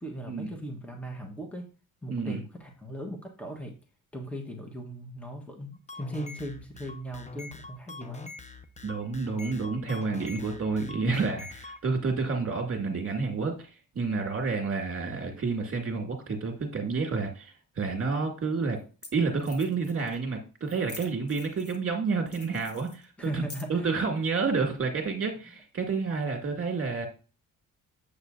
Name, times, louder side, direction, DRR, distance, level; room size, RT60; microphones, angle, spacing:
voice 1, 0.0-1.7 2.0-3.7 4.1-8.3 23.2-23.9, equal, 5° left, 2 dB, 1.3 m, -38 dB
voice 2, 2.1-2.4 8.8-18.8 19.1-23.4 23.7-27.1, right 4 dB, 40° right, 3 dB, 2.1 m, -29 dB
sound 1, 5.7-11.8, left 3 dB, 20° left, 0.8 m, -44 dB
sound 2, 17.9-18.0 18.8-18.9 19.0-19.1 19.4-20.2 20.7-21.9 22.3-23.9, left 3 dB, 45° left, 1.4 m, -47 dB
7.7 x 6.7 x 2.7 m, 0.35 s
cardioid pair, 110°, 34 cm